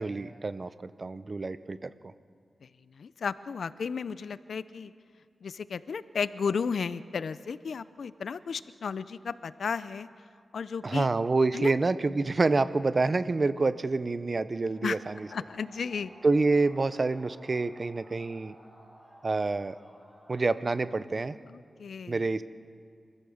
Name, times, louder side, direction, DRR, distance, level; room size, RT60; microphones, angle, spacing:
voice 1, 0.0-2.1 10.8-15.3 16.2-18.5 19.2-19.8 20.3-21.4 22.1-22.4, right 3 dB, 40° right, 14 dB, 0.7 m, -27 dB
voice 2, 2.9-4.9 5.4-10.1 10.5-11.1 11.5-11.7 14.8-15.0 15.3-16.1 21.5-22.2, left 6 dB, 80° left, 15 dB, 0.6 m, -34 dB
sound 1, 14.7-20.9, equal, 20° right, 7.5 m, -55 dB
25.5 x 15.5 x 7.1 m, 2.2 s
wide cardioid pair, 90°, 0 cm